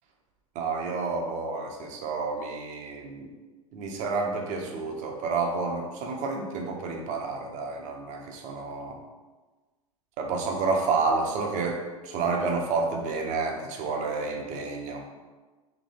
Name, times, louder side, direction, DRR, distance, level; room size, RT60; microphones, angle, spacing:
voice 1, 0.5-3.3 3.7-9.0 10.2-15.2, right 4 dB, 40° right, 1 dB, 0.8 m, -30 dB
3.3 x 3.1 x 4.2 m, 1.3 s
hypercardioid pair, 105°, 18 cm